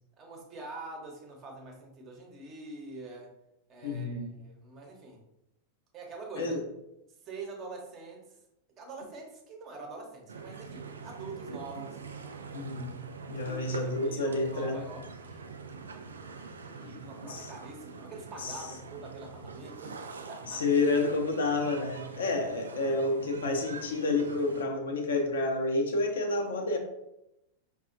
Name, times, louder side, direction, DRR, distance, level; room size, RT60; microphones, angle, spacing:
voice 1, 0.2-3.3 3.7-5.2 5.9-6.6 7.2-8.4 8.8-12.0 13.4-15.4 16.8-20.0 20.3-20.6, right 3 dB, 30° right, 1 dB, 0.9 m, -45 dB
voice 2, 3.8-4.3 6.4-6.6 12.5-13.0 13.3-14.8 16.8-17.5 18.4-18.7 20.5-26.8, left 2 dB, 65° left, 5 dB, 0.5 m, -29 dB
sound 1, 10.3-24.6, right 5 dB, 70° right, 0.3 m, -44 dB
4.8 x 2.3 x 2.5 m, 0.86 s
figure-of-eight pair, 90°, 0 cm